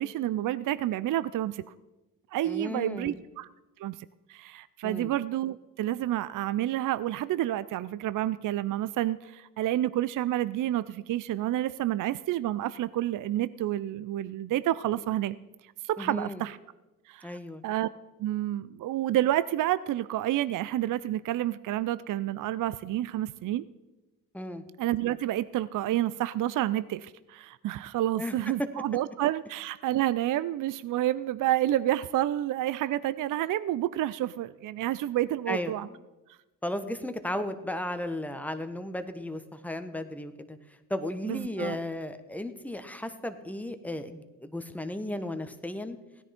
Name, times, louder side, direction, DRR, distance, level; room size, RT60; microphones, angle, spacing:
voice 1, 0.0-1.6 2.3-3.5 3.8-4.0 4.3-15.4 15.6-16.6 17.1-17.4 17.6-17.9 18.2-23.7 24.8-35.9 37.3-37.4 41.2-41.8, right 13 dB, 50° right, 16 dB, 0.5 m, -29 dB
voice 2, 2.4-3.2 4.8-5.1 16.0-16.4 17.2-17.6 24.3-24.6 28.2-28.4 35.5-36.0 36.6-46.0, left 1 dB, 5° left, 9 dB, 1.2 m, -35 dB
16.5 x 10.0 x 4.4 m, 1.1 s
hypercardioid pair, 60°, 42 cm